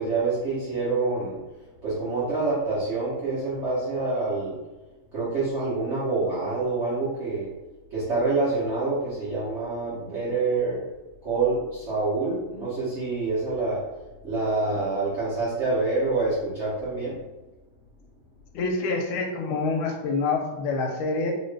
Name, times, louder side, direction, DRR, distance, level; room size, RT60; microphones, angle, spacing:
voice 1, 0.0-1.4 1.8-4.6 5.1-7.5 7.9-10.8 11.2-13.8 14.2-17.2, right 3 dB, 50° right, -9 dB, 0.8 m, -26 dB
voice 2, 18.5-21.3, left 3 dB, 85° left, 3 dB, 1.5 m, -26 dB
3.0 x 2.9 x 3.2 m, 1.1 s
omnidirectional pair, 2.3 m